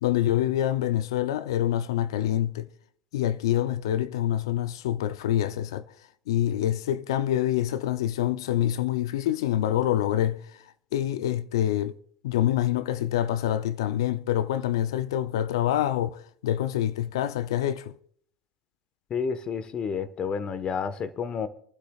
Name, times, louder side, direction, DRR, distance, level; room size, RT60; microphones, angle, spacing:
voice 1, 0.0-2.7 3.1-5.8 6.3-10.6 10.9-11.9 12.2-17.9, left 12 dB, 75° left, 0.5 m, -26 dB
voice 2, 19.1-21.5, left 6 dB, 35° left, 1.2 m, -30 dB
28.0 x 11.5 x 2.4 m
hypercardioid pair, 90°, 3 cm